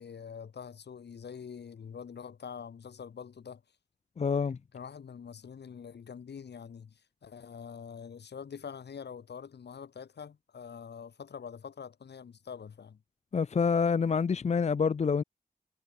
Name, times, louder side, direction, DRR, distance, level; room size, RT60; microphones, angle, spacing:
voice 1, 0.0-3.6 4.7-13.0, left 7 dB, 85° left, 4.0 m, -45 dB
voice 2, 4.2-4.6 13.3-15.2, left 5 dB, 40° left, 0.6 m, -27 dB
wide cardioid pair, 160°, 17 cm